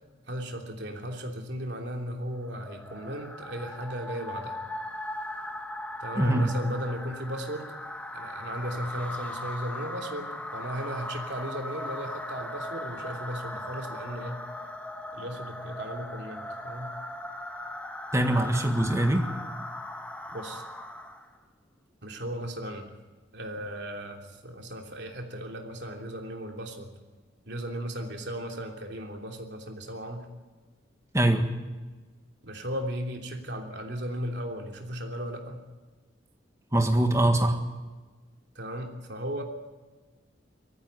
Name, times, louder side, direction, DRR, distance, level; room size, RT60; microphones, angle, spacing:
voice 1, 0.3-4.6 6.0-7.7 8.1-14.4 15.1-16.9 20.3-20.6 22.0-22.9 23.3-26.9 27.5-30.2 32.4-35.6 38.5-39.4, equal, 60° right, 2 dB, 3.1 m, -36 dB
sound 1, 2.4-21.3, left 1 dB, 5° left, 1.3 m, -39 dB
voice 2, 6.2-6.5 18.1-19.3 31.1-31.4 36.7-37.6, right 1 dB, 15° right, 5 dB, 1.7 m, -23 dB
19.5 x 14.5 x 9.6 m, 1.3 s
head